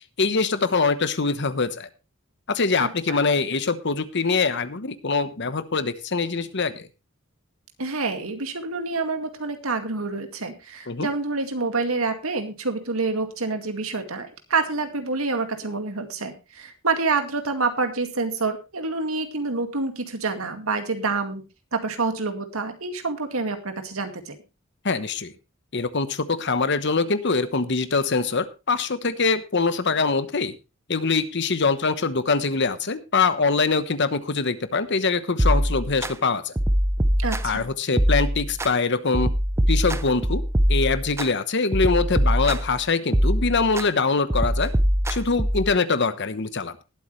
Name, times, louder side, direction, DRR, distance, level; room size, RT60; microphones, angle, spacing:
voice 1, 0.0-1.9 2.5-6.9 10.9-11.1 24.8-25.3 25.7-30.5 30.9-36.5 37.4-39.3 39.7-40.4 40.7-44.7 45.1-46.8, left 4 dB, 55° left, 12 dB, 1.1 m, -23 dB
voice 2, 7.8-21.4 21.7-24.4 37.2-37.7, right 3 dB, 90° right, 7 dB, 2.1 m, -27 dB
sound 1, 35.4-36.1 36.6-37.6 38.0-38.7 39.1-41.3 41.7-42.8 43.1-43.9 44.3-45.7, equal, 15° right, 0.6 m, -23 dB
19.5 x 8.4 x 3.2 m, 0.28 s
head